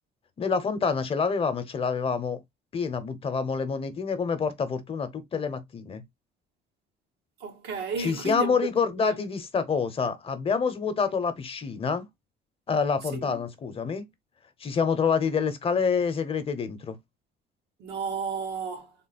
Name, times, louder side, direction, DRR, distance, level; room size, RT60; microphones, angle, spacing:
voice 1, 0.4-2.4 2.7-6.0 8.0-12.1 12.7-14.1 14.6-17.0, left 5 dB, 35° left, 0.8 m, -27 dB
voice 2, 7.4-8.7 9.0-9.2 11.1-11.2 13.1-13.4 17.8-18.9, right 5 dB, 85° right, 1.3 m, -33 dB
3.7 x 2.0 x 4.1 m
cardioid pair, 110°, 17 cm